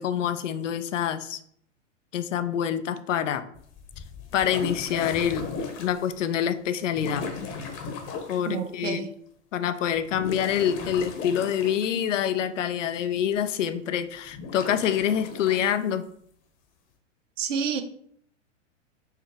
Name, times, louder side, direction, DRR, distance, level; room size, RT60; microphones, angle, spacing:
voice 1, 0.0-1.4 2.1-3.4 4.3-5.5 5.8-7.3 8.3-9.1 9.5-16.0, left 9 dB, 75° left, 0.6 m, -26 dB
sound 1, 3.5-6.1 6.9-8.5 9.9-12.3 14.3-15.7, left 4 dB, 40° left, 1.0 m, -36 dB
voice 2, 8.5-9.1 17.4-17.8, right 6 dB, 75° right, 0.7 m, -29 dB
4.6 x 2.9 x 3.3 m
hypercardioid pair, 110°, 38 cm